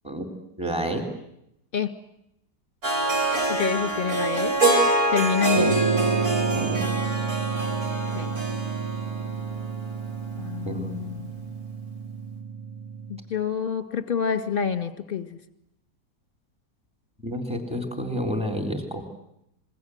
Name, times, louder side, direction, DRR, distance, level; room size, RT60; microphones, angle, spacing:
voice 1, 0.6-1.0 6.5-6.8 10.7-11.2 17.2-19.0, equal, 5° right, 4 dB, 3.5 m, -30 dB
Harp, 2.8-10.0, right 2 dB, 60° right, 4.5 m, -25 dB
voice 2, 3.5-4.5 5.1-5.7 8.1-8.3 10.4-11.3 13.1-15.4, left 7 dB, 30° left, 11 dB, 1.9 m, -27 dB
sound 1, 5.5-13.2, right 5 dB, 20° right, 1.3 m, -29 dB
27.5 x 22.0 x 7.9 m, 0.79 s
omnidirectional pair, 1.8 m